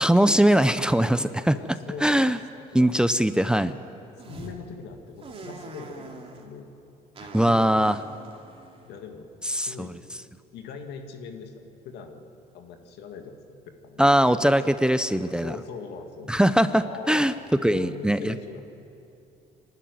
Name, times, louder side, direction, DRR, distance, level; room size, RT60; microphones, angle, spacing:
voice 1, 0.0-1.6 2.0-2.4 2.7-3.8 7.3-7.9 9.5-9.9 14.0-15.5 16.3-17.3 17.6-18.3, right 1 dB, 5° right, 12 dB, 0.6 m, -21 dB
voice 2, 1.5-2.3 2.7-2.9 4.2-6.7 7.2-8.0 8.8-9.3 9.6-10.0 10.5-12.3 12.5-13.6 13.8-14.4 14.6-14.7 15.3-16.4 16.8-17.3 17.7-18.6, left 5 dB, 80° left, 5 dB, 2.0 m, -41 dB
sound 1, 4.2-4.6 5.2-6.5 7.2-9.5, right 4 dB, 35° right, 2.7 m, -44 dB
24.0 x 12.0 x 9.4 m, 2.7 s
cardioid pair, 110°, 17 cm